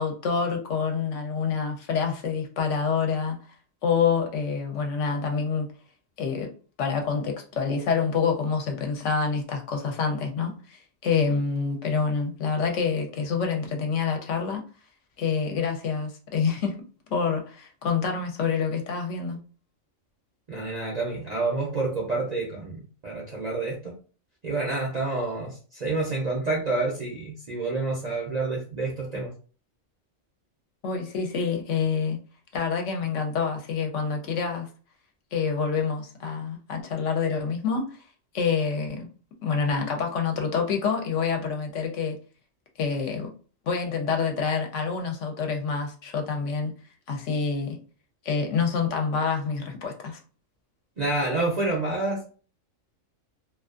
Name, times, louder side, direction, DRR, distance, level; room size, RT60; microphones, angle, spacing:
voice 1, 0.0-3.4 3.8-5.7 6.2-6.5 6.8-14.6 15.2-16.8 17.1-19.4 30.8-32.2 32.5-34.7 35.3-38.0 38.3-39.1 39.4-42.2 42.8-43.3 43.7-46.7 47.1-47.8 48.2-50.2, left 5 dB, 70° left, 0.9 m, -27 dB
voice 2, 20.5-23.9 24.4-29.3 51.0-52.3, right 3 dB, 50° right, 0.5 m, -28 dB
2.4 x 2.3 x 2.4 m
omnidirectional pair, 1.4 m